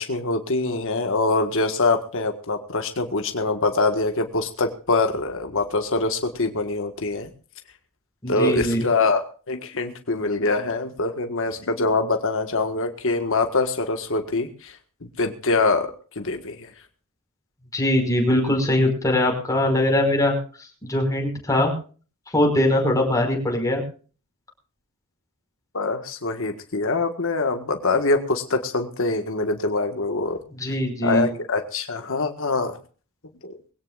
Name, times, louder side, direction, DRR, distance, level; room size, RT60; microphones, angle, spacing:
voice 1, 0.0-7.3 8.3-14.8 15.2-16.7 25.7-30.4 31.0-32.8 33.4-33.5, left 3 dB, 65° left, 5 dB, 1.7 m, -24 dB
voice 2, 8.2-8.8 17.7-20.4 20.8-21.7 22.3-23.8 30.6-31.3, left 1 dB, 15° left, 2 dB, 5.4 m, -21 dB
22.0 x 17.0 x 2.5 m, 0.38 s
head